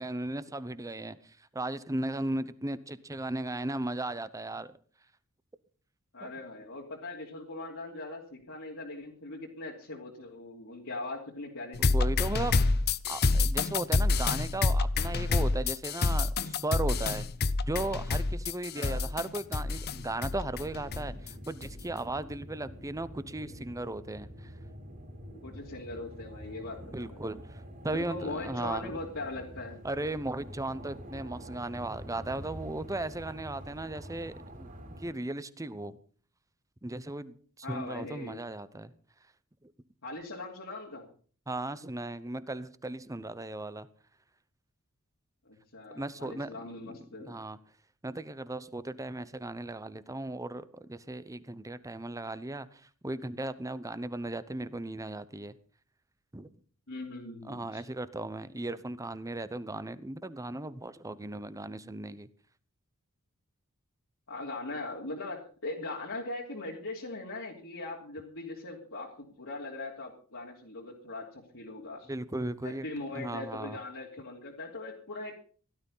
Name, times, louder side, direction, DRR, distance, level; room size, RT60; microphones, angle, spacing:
voice 1, 0.0-4.7 6.2-6.3 11.8-12.5 13.1-17.3 17.7-24.5 26.9-29.0 29.8-34.7 35.0-36.0 36.8-38.9 39.6-39.7 41.5-43.9 45.9-46.5 46.8-47.6 48.0-55.5 56.3-56.6 57.4-62.3 72.1-72.9 73.1-73.8, right 2 dB, 15° right, 0.9 m, -36 dB
voice 2, 6.1-11.8 18.7-19.0 25.4-27.2 27.9-29.8 37.6-38.4 40.0-41.1 45.4-47.4 56.9-57.8 64.3-72.1 72.6-75.4, left 2 dB, 65° left, 3.0 m, -40 dB
sound 1, 11.7-21.3 21.6-21.8, left 3 dB, 50° left, 0.8 m, -28 dB
sound 2, 19.0-35.1, equal, 40° right, 4.3 m, -47 dB
17.0 x 12.0 x 5.6 m
head